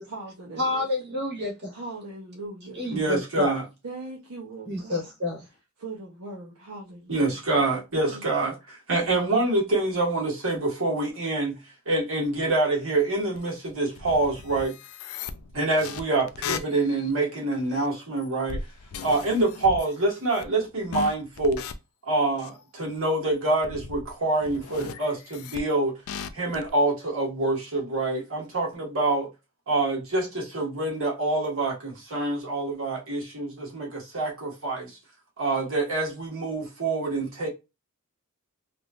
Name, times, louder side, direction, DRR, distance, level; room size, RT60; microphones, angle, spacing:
voice 1, 0.0-0.9 1.7-3.0 3.8-5.1 5.8-7.7 8.1-8.3, right 2 dB, 85° right, 0.8 m, -40 dB
voice 2, 0.6-1.8 2.7-3.6 4.6-5.4, left 2 dB, 50° right, 1.5 m, -29 dB
voice 3, 2.9-3.6 7.1-11.6 11.8-14.7 15.5-18.6 19.0-21.6 22.0-26.0 26.3-29.3 29.7-34.9 35.4-37.5, right 2 dB, 65° right, 1.5 m, -26 dB
sound 1, 13.4-13.5 13.9-17.1 17.6-17.9 18.2-19.9 20.3-20.7 20.9-21.7 22.4-22.6 23.5-24.1 24.4-25.6 26.1-26.7, left 6 dB, 70° left, 0.4 m, -37 dB
3.4 x 2.5 x 2.4 m
head